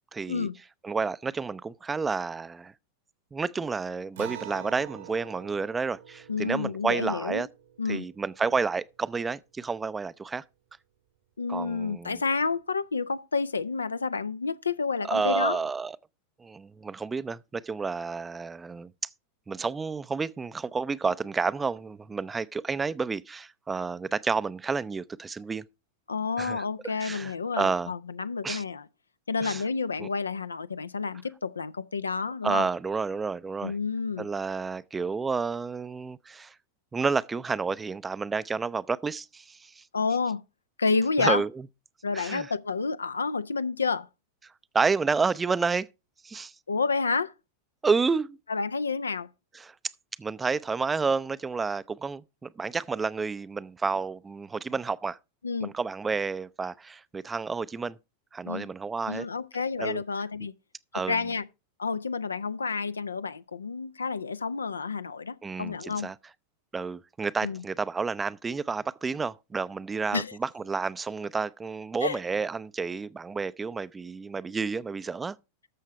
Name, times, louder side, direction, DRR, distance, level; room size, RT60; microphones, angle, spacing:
voice 1, 0.1-0.5 0.8-2.7 3.3-7.5 7.9-10.4 11.5-12.2 15.1-16.0 16.4-19.1 19.5-25.6 26.4-26.6 27.0-27.9 28.4-28.6 29.4-29.6 30.0-30.1 32.4-33.7 34.2-36.5 36.9-39.8 41.2-41.5 42.1-42.5 44.7-45.9 46.2-46.5 47.8-48.4 49.6-49.7 50.2-55.2 55.6-58.0 58.3-59.3 59.8-60.0 60.9-61.2 65.4-66.2 66.7-75.3, right 4 dB, 15° right, 0.5 m, -30 dB
Acoustic guitar, 4.2-9.0, right 10 dB, 60° right, 1.2 m, -45 dB
voice 2, 6.3-7.5 7.8-8.0 11.4-15.6 26.1-28.9 29.3-32.7 33.6-34.3 39.9-40.4 40.8-41.4 42.0-44.1 46.7-47.3 48.5-49.3 55.4-55.7 58.5-58.7 59.1-60.5 60.9-61.4 61.8-66.1 67.4-67.6 70.1-70.4 72.0-72.2, left 4 dB, 75° left, 0.5 m, -29 dB
13.5 x 6.5 x 4.6 m
figure-of-eight pair, 90°, 0 cm